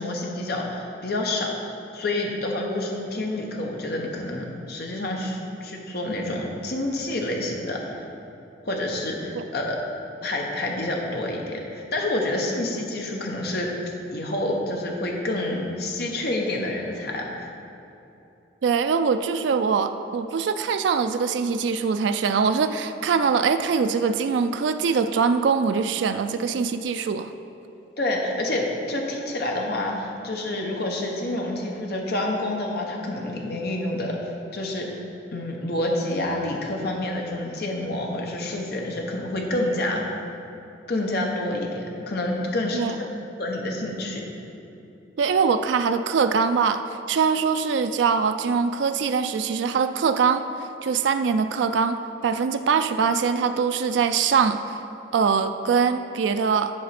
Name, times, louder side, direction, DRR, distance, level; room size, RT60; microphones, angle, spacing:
voice 1, 0.0-1.6 1.9-8.0 8.6-9.8 10.2-13.7 14.1-17.5 28.0-34.2 34.5-35.0 35.3-40.1 40.9-43.0 43.4-44.2, left 1 dB, 60° left, 0 dB, 1.1 m, -28 dB
voice 2, 18.6-27.3 42.7-43.0 45.2-46.8 47.1-54.8 55.1-56.7, right 5 dB, 70° right, 9 dB, 0.3 m, -23 dB
9.7 x 4.1 x 5.9 m, 2.9 s
head